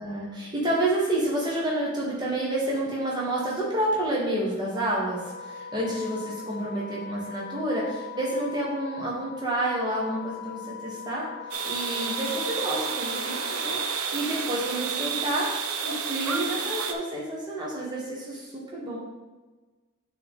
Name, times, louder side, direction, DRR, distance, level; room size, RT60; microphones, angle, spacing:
voice 1, 0.0-11.3 11.7-15.6 15.8-19.0, right 1 dB, 20° right, -5 dB, 1.5 m, -29 dB
Wind instrument woodwind instrument, 5.0-14.0, left 7 dB, 35° left, 0.8 m, -41 dB
sound 1, 11.5-16.9, right 6 dB, 85° right, 0.7 m, -30 dB
9.3 x 4.0 x 3.7 m, 1.3 s
head